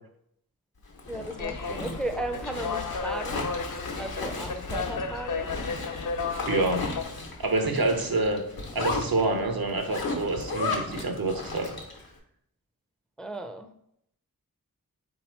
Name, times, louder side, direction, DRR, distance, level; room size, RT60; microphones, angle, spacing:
Zipper (clothing), 0.9-12.1, left 3 dB, 85° left, 0.8 m, -35 dB
voice 1, 1.1-3.5 4.0-5.5 13.2-13.7, right 1 dB, ahead, 6 dB, 0.4 m, -35 dB
sound 1, 1.4-7.0, left 5 dB, 60° left, 0.5 m, -33 dB
voice 2, 6.5-6.9 7.4-8.4 8.7-11.7, right 2 dB, 80° right, 4 dB, 0.8 m, -27 dB
3.9 x 2.9 x 4.3 m, 0.72 s
wide cardioid pair, 55°, 35 cm